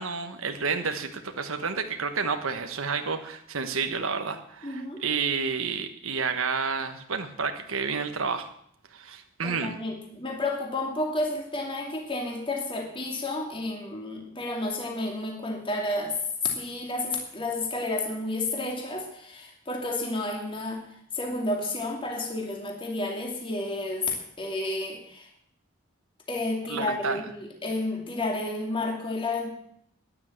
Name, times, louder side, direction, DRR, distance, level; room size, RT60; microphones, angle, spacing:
voice 1, 0.0-8.5 8.9-9.7 26.7-27.2, right 5 dB, 75° right, 7 dB, 1.2 m, -30 dB
voice 2, 4.6-5.0 9.4-16.2 16.5-20.8 21.1-25.3 26.3-29.5, left 2 dB, 25° left, 2 dB, 2.4 m, -31 dB
12.0 x 10.0 x 8.0 m, 0.70 s
head